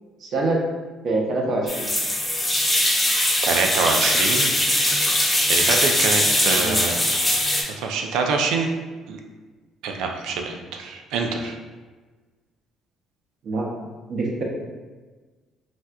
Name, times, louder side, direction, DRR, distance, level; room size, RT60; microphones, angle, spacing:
voice 1, 0.2-0.6 1.0-1.9 6.6-6.8 13.4-13.6 14.1-14.4, right 2 dB, 55° right, -1 dB, 0.7 m, -24 dB
Shower hose, 1.7-7.6, left 1 dB, 10° left, 0.6 m, -21 dB
voice 2, 3.4-4.5 5.5-7.0 7.6-8.7 9.1-9.2 9.8-11.6, right 4 dB, 85° right, 3 dB, 0.4 m, -25 dB
4.1 x 2.3 x 2.3 m, 1.3 s
cardioid pair, 110°, 0 cm